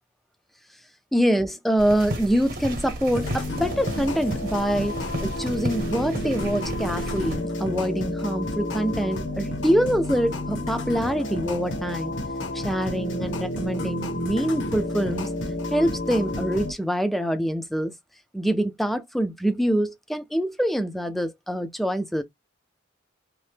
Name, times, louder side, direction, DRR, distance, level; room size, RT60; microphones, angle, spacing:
voice 1, 1.1-12.1 12.5-15.3 15.7-17.9 18.3-22.2, equal, ahead, 0.3 m, -25 dB
sound 1, 1.8-7.4, equal, 45° right, 0.9 m, -33 dB
sound 2, 3.1-16.7, left 1 dB, 65° left, 0.7 m, -30 dB
2.8 x 2.0 x 3.2 m
head